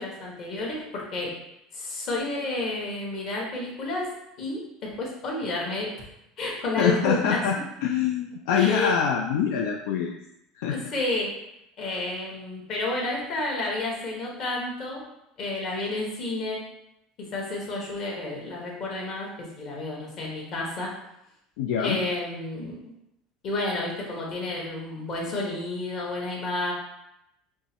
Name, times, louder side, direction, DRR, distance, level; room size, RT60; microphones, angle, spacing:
voice 1, 0.0-1.3 1.7-5.9 6.4-7.4 8.5-9.0 10.7-11.3 11.8-15.0 15.4-16.6 17.2-20.9 21.8-22.9 23.4-26.7, left 2 dB, 50° left, -3 dB, 1.4 m, -31 dB
voice 2, 6.8-7.5 7.8-10.2 10.6-10.8 21.6-22.0, left 7 dB, 80° left, 1 dB, 0.3 m, -24 dB
5.2 x 2.1 x 2.9 m, 0.82 s
supercardioid pair, 115°, 0 cm